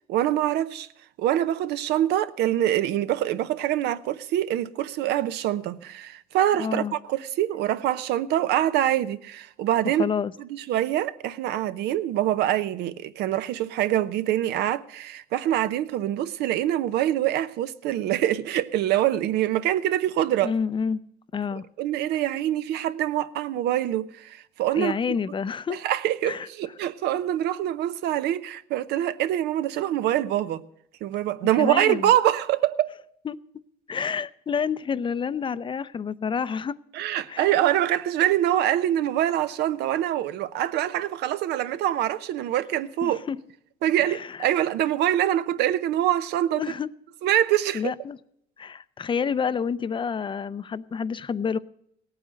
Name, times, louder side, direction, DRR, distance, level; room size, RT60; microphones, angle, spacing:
voice 1, 0.1-0.9 1.2-10.1 10.4-20.5 21.8-24.9 25.7-30.7 31.0-32.9 36.9-43.2 43.8-46.6 47.2-47.9, right 12 dB, 80° right, 0.8 m, -25 dB
voice 2, 6.6-6.9 10.0-10.3 20.4-21.0 21.3-21.6 24.8-25.8 26.2-26.5 31.6-32.1 33.3-33.4 33.9-36.8 37.3-37.5 43.0-43.4 44.0-44.5 46.5-46.9 47.7-48.2 48.6-51.6, left 6 dB, 30° left, 0.5 m, -28 dB
17.0 x 9.0 x 6.3 m
cardioid pair, 110°, 17 cm